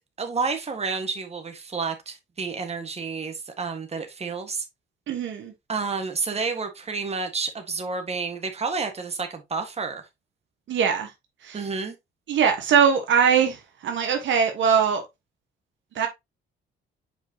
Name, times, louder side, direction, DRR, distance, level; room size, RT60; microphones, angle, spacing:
voice 1, 0.2-4.6 5.7-10.0 11.5-12.0, right 4 dB, 30° right, 1.7 m, -30 dB
voice 2, 5.1-5.5 10.7-11.1 11.4-11.6 12.3-13.6 13.8-15.0 15.9-16.1, right 7 dB, 70° right, 1.4 m, -21 dB
7.2 x 5.0 x 2.9 m
cardioid pair, 90°, 20 cm